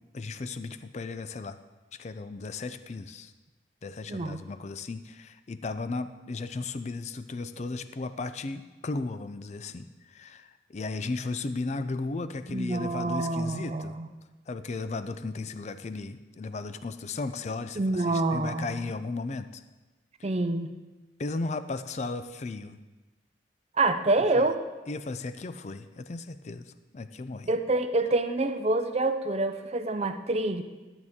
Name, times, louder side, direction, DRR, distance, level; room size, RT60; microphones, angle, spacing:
voice 1, 0.0-1.6 2.0-3.3 3.8-14.0 14.5-19.6 21.2-22.8 24.3-24.4 24.9-27.5, left 3 dB, 35° left, 11 dB, 0.4 m, -35 dB
voice 2, 4.1-4.4 12.5-14.1 17.8-18.8 20.2-20.7 23.8-24.6 27.5-30.6, right 2 dB, 35° right, 8 dB, 0.5 m, -27 dB
12.5 x 7.9 x 3.6 m, 1.2 s
head